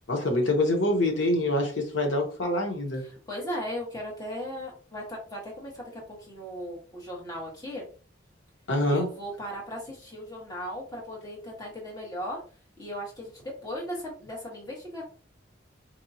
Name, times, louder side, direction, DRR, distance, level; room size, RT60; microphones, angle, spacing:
voice 1, 0.1-3.0 8.7-9.1, left 1 dB, 85° left, 1 dB, 1.1 m, -25 dB
voice 2, 3.0-7.8 8.8-12.4 12.8-15.0, equal, 20° left, -3 dB, 1.4 m, -37 dB
4.6 x 2.8 x 2.8 m, 0.40 s
head